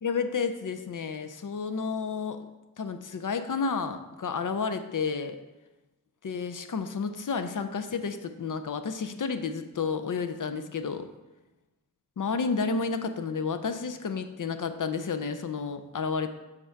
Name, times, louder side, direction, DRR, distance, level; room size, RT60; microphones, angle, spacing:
voice 1, 0.0-2.5 2.8-5.4 6.2-11.1 12.2-16.3, left 5 dB, 65° left, 9 dB, 0.5 m, -31 dB
6.7 x 3.7 x 4.5 m, 1.1 s
wide cardioid pair, 55°, 35 cm